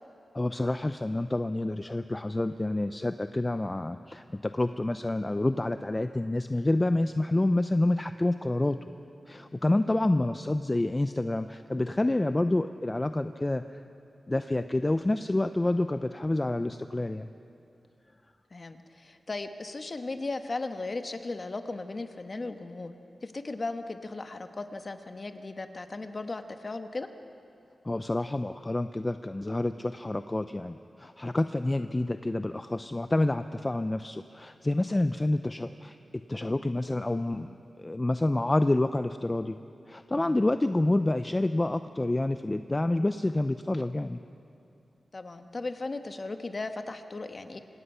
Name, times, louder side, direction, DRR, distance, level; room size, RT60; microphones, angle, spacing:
voice 1, 0.3-8.8 9.3-13.8 14.3-17.3 27.8-39.6 39.9-44.2, left 2 dB, 20° left, 10 dB, 0.5 m, -28 dB
voice 2, 9.8-10.1 18.5-22.9 23.2-27.1 45.1-47.6, left 3 dB, 40° left, 7 dB, 1.1 m, -36 dB
25.5 x 18.0 x 5.6 m, 2.7 s
wide cardioid pair, 90°, 0 cm